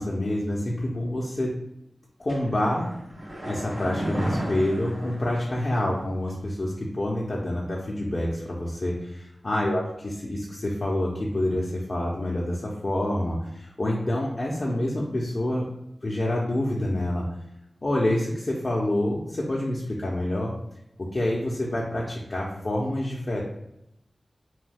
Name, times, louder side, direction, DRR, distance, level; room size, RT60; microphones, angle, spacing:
voice 1, 0.0-1.5 2.2-2.9 3.4-9.8 10.3-15.6 16.0-17.3 17.8-20.5 21.0-23.4, left 1 dB, 55° left, -4 dB, 0.7 m, -27 dB
sound 1, 2.3-6.0 6.3-6.4, right 1 dB, 75° right, 1.0 m, -33 dB
3.1 x 2.3 x 3.4 m, 0.82 s
cardioid pair, 40°, 0 cm